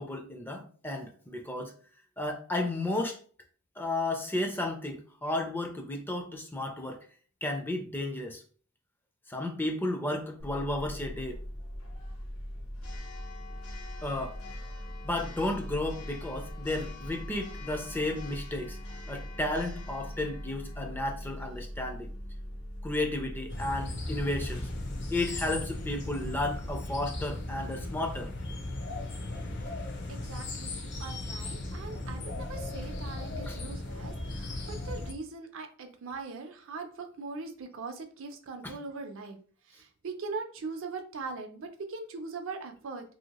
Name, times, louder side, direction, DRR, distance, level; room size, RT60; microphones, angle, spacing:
voice 1, 0.0-1.7 2.2-3.2 3.8-7.0 7.4-8.4 9.3-11.4 14.0-14.4 15.0-18.8 19.1-22.1 22.8-24.7 25.1-28.3 33.5-33.6 38.6-38.7, left 1 dB, 10° left, 4 dB, 0.4 m, -33 dB
Church bell, 10.4-26.7, equal, 80° left, 0.9 m, -41 dB
sound 1, 23.5-35.1, left 2 dB, 55° left, 0.6 m, -37 dB
voice 2, 30.1-39.4 39.7-43.2, right 4 dB, 65° right, 5 dB, 0.5 m, -41 dB
2.8 x 2.7 x 2.9 m, 0.42 s
head